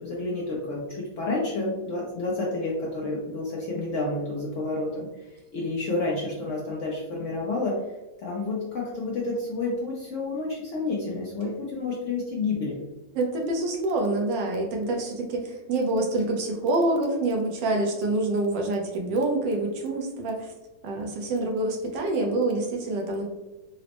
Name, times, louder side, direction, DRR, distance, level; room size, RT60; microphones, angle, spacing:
voice 1, 0.0-7.8 8.2-12.8, left 3 dB, 65° left, -4 dB, 0.7 m, -30 dB
voice 2, 13.1-20.5 20.8-23.3, right 2 dB, 85° right, 1 dB, 1.4 m, -26 dB
4.1 x 2.0 x 2.9 m, 1.1 s
omnidirectional pair, 1.9 m